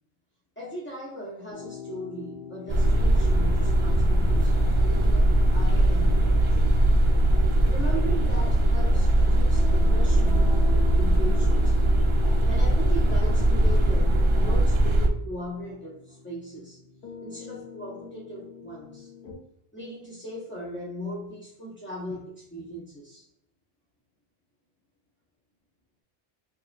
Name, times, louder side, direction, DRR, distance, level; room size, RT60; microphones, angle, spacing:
voice 1, 0.6-4.6 4.8-6.9 7.2-16.8 17.2-19.1 19.7-23.3, equal, 15° left, -5 dB, 0.6 m, -39 dB
sound 1, 1.5-19.3, left 7 dB, 60° left, 1.2 m, -45 dB
sound 2, 2.7-15.1, right 1 dB, 40° right, 0.4 m, -20 dB
5.4 x 3.0 x 2.5 m, 0.76 s
omnidirectional pair, 1.1 m